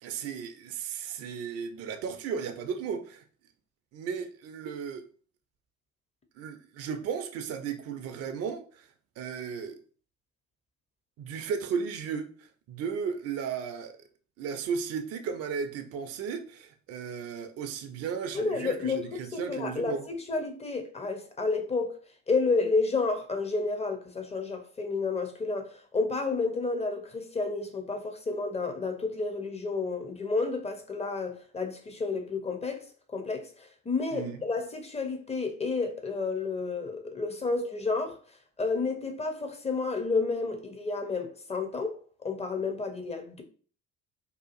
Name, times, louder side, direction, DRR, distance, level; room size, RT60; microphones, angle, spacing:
voice 1, 0.0-3.2 3.9-5.1 6.4-8.9 9.2-9.8 11.2-14.0 14.4-20.1 34.1-34.4, right 6 dB, 40° right, 0.5 m, -35 dB
voice 2, 18.3-19.0 19.3-22.0 22.3-32.9 33.1-38.2 38.6-42.0 42.2-43.4, left 3 dB, 15° left, 0.6 m, -30 dB
2.7 x 2.4 x 2.5 m
figure-of-eight pair, 50°, 38 cm